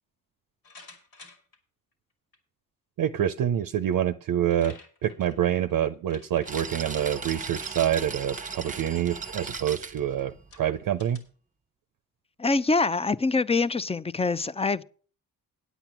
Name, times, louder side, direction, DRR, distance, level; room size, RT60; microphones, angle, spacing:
sound 1, 0.6-1.6 2.3-2.4 3.9-4.0 4.2-6.5 7.5-7.8 8.2-8.5 9.2-9.3 10.0-10.1 10.5-11.2, left 3 dB, 80° left, 2.7 m, -52 dB
voice 1, 3.0-11.2, right 10 dB, 65° right, 0.6 m, -27 dB
sound 2, 6.5-10.8, right 4 dB, 20° right, 0.9 m, -37 dB
voice 2, 12.4-14.8, left 3 dB, 15° left, 0.5 m, -25 dB
9.1 x 8.3 x 5.9 m
cardioid pair, 70°, 35 cm